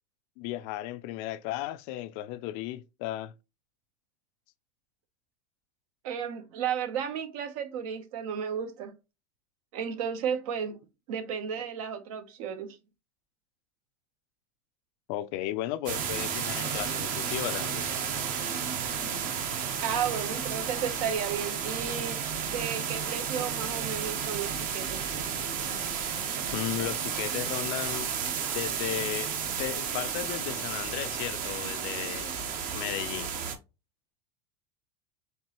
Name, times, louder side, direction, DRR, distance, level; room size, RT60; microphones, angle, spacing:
voice 1, 0.4-3.3 15.1-17.9 26.5-28.1 28.5-32.4 32.7-33.3, left 14 dB, 50° left, 0.4 m, -35 dB
voice 2, 6.0-8.9 9.7-10.8 11.1-12.8 19.8-22.2 22.5-25.1, right 8 dB, 70° right, 0.9 m, -33 dB
sound 1, 15.9-33.6, right 7 dB, 45° right, 0.9 m, -32 dB
4.4 x 3.1 x 2.9 m
supercardioid pair, 115°, 19 cm